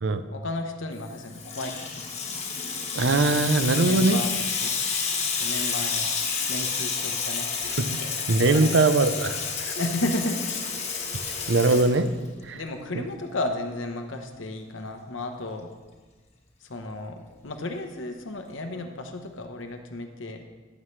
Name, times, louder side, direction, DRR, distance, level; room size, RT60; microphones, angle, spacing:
voice 1, 0.3-2.1 3.9-4.7 5.4-6.1 6.5-7.5 7.8-7.9 8.5-8.8 9.8-10.7 12.5-15.7 16.6-20.4, left 2 dB, 75° left, 5 dB, 1.0 m, -33 dB
Water tap faucet / Sink (filling or washing), 1.0-12.5, left 5 dB, 35° left, 1.2 m, -30 dB
voice 2, 2.9-4.2 7.8-7.9 8.3-9.4 11.5-12.1 12.5-12.6, right 3 dB, 60° right, 11 dB, 0.6 m, -21 dB
15.0 x 7.3 x 3.3 m, 1.3 s
head